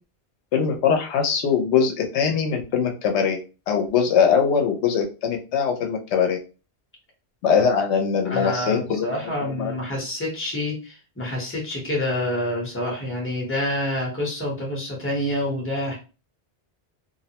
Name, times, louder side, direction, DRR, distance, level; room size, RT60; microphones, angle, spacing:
voice 1, 0.5-3.4 3.7-6.4 7.4-9.1 9.4-9.7, left 6 dB, 85° left, 4 dB, 0.9 m, -21 dB
voice 2, 8.2-16.0, left 1 dB, 15° left, -3 dB, 0.8 m, -27 dB
2.6 x 2.1 x 2.8 m, 0.33 s
omnidirectional pair, 1.1 m